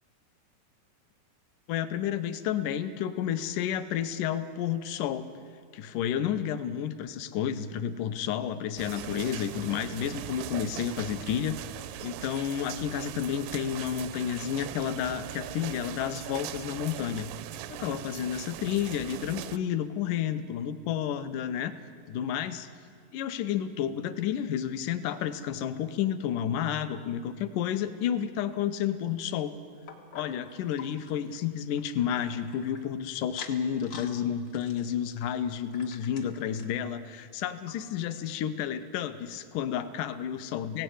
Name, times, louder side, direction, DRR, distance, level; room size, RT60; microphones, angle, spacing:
voice 1, 1.7-5.2 5.7-11.7 12.0-17.3 17.7-21.7 22.1-22.7 23.1-29.5 30.1-40.8, left 9 dB, 75° left, 11 dB, 2.1 m, -31 dB
sound 1, 8.8-19.6, right 13 dB, 80° right, 1.9 m, -40 dB
sound 2, 29.9-32.8 33.2-34.1 34.4-36.8 37.3-37.4 37.7-37.8 38.4-38.5, left 5 dB, 60° left, 1.2 m, -48 dB
17.0 x 17.0 x 9.6 m, 2.1 s
omnidirectional pair, 4.5 m